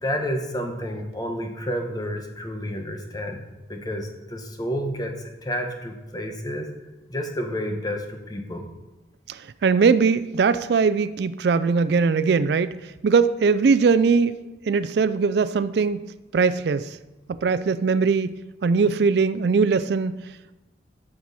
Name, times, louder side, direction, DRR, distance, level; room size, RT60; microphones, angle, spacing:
voice 1, 0.0-3.4 3.7-6.7 7.1-8.7, equal, 20° left, 4 dB, 1.0 m, -30 dB
voice 2, 9.3-16.0 16.3-17.0 17.3-18.4 18.6-20.2, right 5 dB, 60° right, 14 dB, 0.3 m, -21 dB
13.0 x 6.1 x 4.1 m, 1.1 s
head